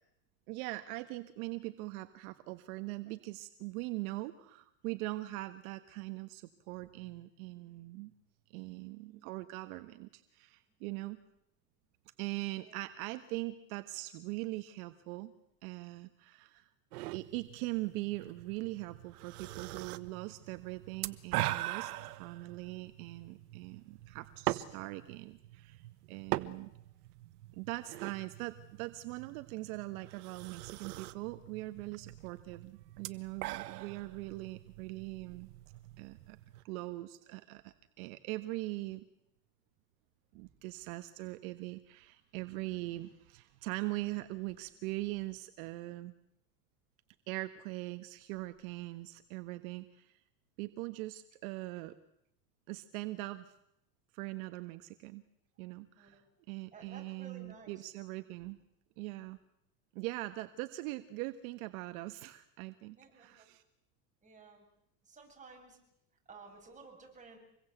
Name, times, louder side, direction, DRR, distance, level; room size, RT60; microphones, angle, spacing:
voice 1, 0.5-8.1 8.5-11.2 12.2-15.3 15.6-16.7 17.1-21.9 22.2-26.7 27.5-35.5 36.0-36.4 36.6-39.0 40.3-46.1 47.3-50.2 50.6-51.9 52.7-53.5 54.1-55.2 55.6-56.2 56.5-58.6 59.0-59.4 59.9-63.6, right 19 dB, 65° right, 10 dB, 1.5 m, -41 dB
sound 1, 16.9-36.6, right 17 dB, 80° right, 1.4 m, -42 dB
voice 2, 26.4-26.8 56.0-56.2 56.7-57.8 63.0-63.5 64.2-64.6 65.0-65.8 66.3-67.4, right 4 dB, 15° right, 1 dB, 7.9 m, -55 dB
26.5 x 22.5 x 8.2 m, 0.79 s
supercardioid pair, 145°, 45 cm